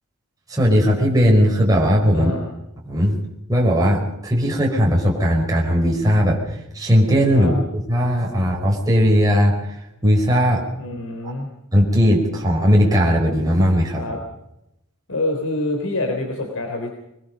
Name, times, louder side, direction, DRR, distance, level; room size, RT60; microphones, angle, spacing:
voice 1, 0.5-2.3 2.9-3.1 3.5-6.4 6.7-7.5 7.9-9.8 10.0-10.6 11.7-14.0, equal, 15° right, -2 dB, 4.8 m, -17 dB
voice 2, 2.1-2.5 7.3-7.5 10.8-11.5 14.0-14.2 15.1-16.9, left 2 dB, 65° left, 2 dB, 3.5 m, -26 dB
24.5 x 20.0 x 5.3 m, 0.85 s
head